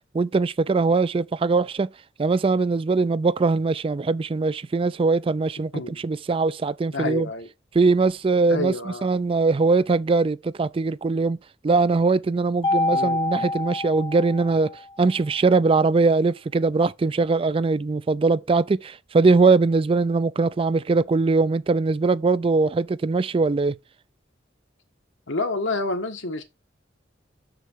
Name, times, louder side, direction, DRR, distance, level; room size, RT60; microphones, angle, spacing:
voice 1, 0.1-1.9 2.2-7.3 7.7-11.4 11.6-14.7 15.0-23.7, right 3 dB, 30° right, 0.3 m, -21 dB
voice 2, 6.9-7.5 8.5-9.1 12.9-13.2 25.3-26.4, left 2 dB, 80° left, 1.6 m, -28 dB
Mallet percussion, 12.6-14.9, left 2 dB, 25° left, 0.8 m, -26 dB
6.6 x 6.5 x 4.6 m
head